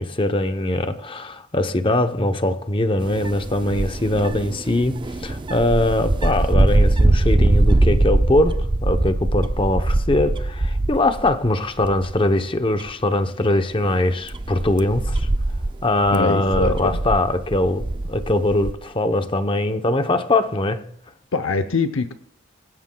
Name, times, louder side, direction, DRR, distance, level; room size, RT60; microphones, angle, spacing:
voice 1, 0.0-15.3 15.8-20.9, left 1 dB, 25° left, 0.7 m, -21 dB
sound 1, 3.0-11.5 11.8-12.3 12.8-12.9 13.8-18.7, right 2 dB, 25° right, 0.5 m, -22 dB
voice 2, 16.1-16.9 21.3-22.1, left 3 dB, 75° left, 0.7 m, -23 dB
26.0 x 15.5 x 2.3 m
head